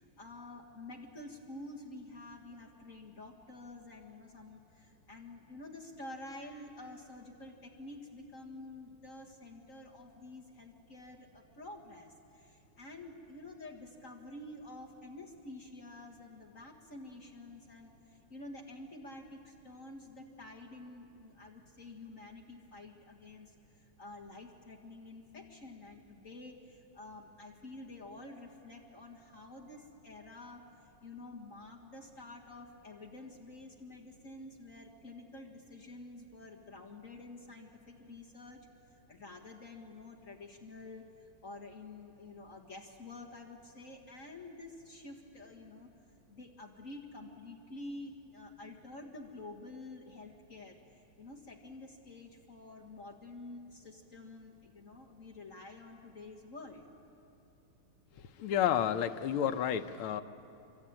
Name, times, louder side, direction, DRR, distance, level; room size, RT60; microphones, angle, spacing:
voice 1, 0.0-38.6 38.9-45.9 46.3-56.8, left 2 dB, 40° left, 0 dB, 2.1 m, -49 dB
voice 2, 58.2-60.2, left 9 dB, 85° left, 9 dB, 1.7 m, -31 dB
26.5 x 24.0 x 8.9 m, 2.8 s
omnidirectional pair, 2.3 m